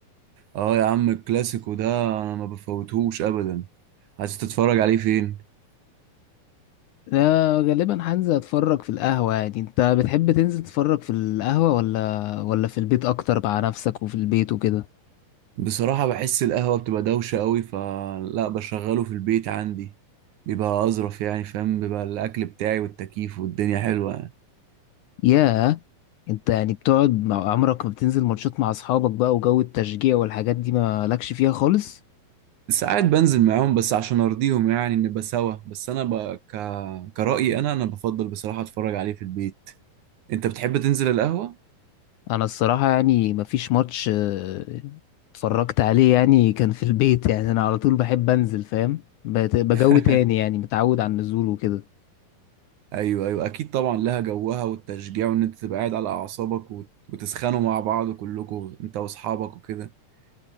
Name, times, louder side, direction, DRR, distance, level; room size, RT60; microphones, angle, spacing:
voice 1, 0.5-3.7 4.2-5.4 15.6-19.9 20.5-24.3 32.7-39.5 40.3-41.6 49.7-50.2 52.9-59.9, right 12 dB, 65° right, 2.3 m, -25 dB
voice 2, 7.1-14.8 25.2-25.8 26.3-32.0 42.3-45.0 45.3-51.8, left 14 dB, 75° left, 2.0 m, -21 dB
omnidirectional pair, 4.1 m